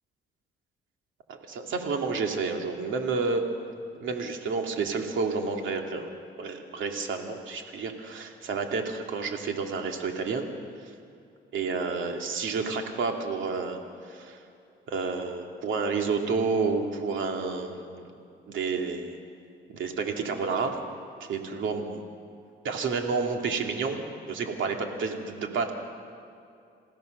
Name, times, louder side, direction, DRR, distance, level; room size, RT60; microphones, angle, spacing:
voice 1, 1.3-3.4 4.0-6.1 6.4-10.4 11.5-14.4 14.9-18.0 18.5-19.2 19.7-20.8 21.2-22.1 22.6-25.7, right 4 dB, 75° right, 3 dB, 2.6 m, -30 dB
28.5 x 16.0 x 6.7 m, 2.5 s
cardioid pair, 90°, 20 cm